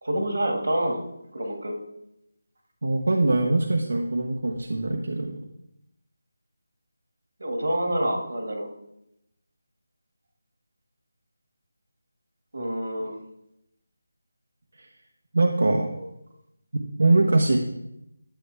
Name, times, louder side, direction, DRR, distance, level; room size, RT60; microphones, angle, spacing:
voice 1, 0.0-1.0 1.3-1.8 7.4-8.7 12.5-13.1 16.0-16.1, right 1 dB, 90° right, 3 dB, 2.2 m, -27 dB
voice 2, 2.8-5.4 14.8-14.9 15.3-15.9 16.7-17.6, right 2 dB, 70° right, 2 dB, 1.1 m, -22 dB
11.5 x 7.7 x 3.5 m, 0.83 s
figure-of-eight pair, 175°, 0 cm